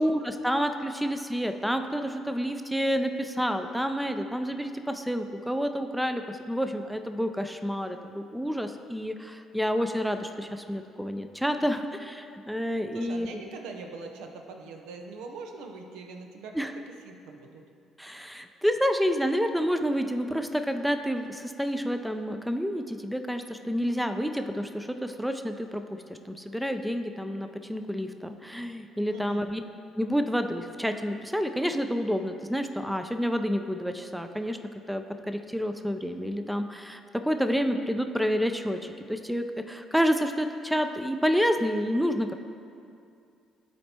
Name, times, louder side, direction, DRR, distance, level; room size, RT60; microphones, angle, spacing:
voice 1, 0.0-13.4 16.5-16.7 18.0-25.8 26.1-29.6 30.0-34.6 34.9-42.3, equal, ahead, 7 dB, 0.5 m, -29 dB
voice 2, 12.9-16.6 17.0-17.6 29.1-29.5, right 3 dB, 75° right, 3 dB, 0.6 m, -42 dB
11.5 x 4.3 x 2.9 m, 2.4 s
hypercardioid pair, 50°, 0 cm